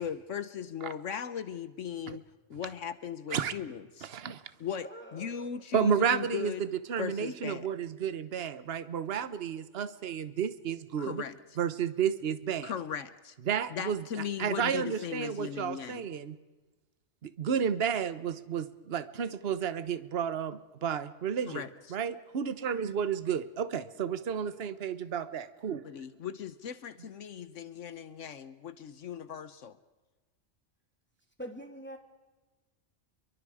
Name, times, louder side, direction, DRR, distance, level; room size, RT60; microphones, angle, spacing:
voice 1, 0.0-2.2 2.5-4.1 4.6-6.6 7.0-7.7 11.0-11.4 12.6-13.3 13.7-16.1 21.5-22.0 25.8-29.8, left 8 dB, 70° left, 13 dB, 1.2 m, -38 dB
voice 2, 4.1-4.4 5.7-11.2 11.6-12.7 13.5-14.0 14.4-16.4 17.2-21.6 21.9-25.8, right 7 dB, 55° right, 13 dB, 1.2 m, -32 dB
voice 3, 4.8-5.3 31.4-32.0, equal, 10° left, 3 dB, 3.0 m, -43 dB
28.5 x 23.5 x 4.9 m, 1.2 s
omnidirectional pair, 1.3 m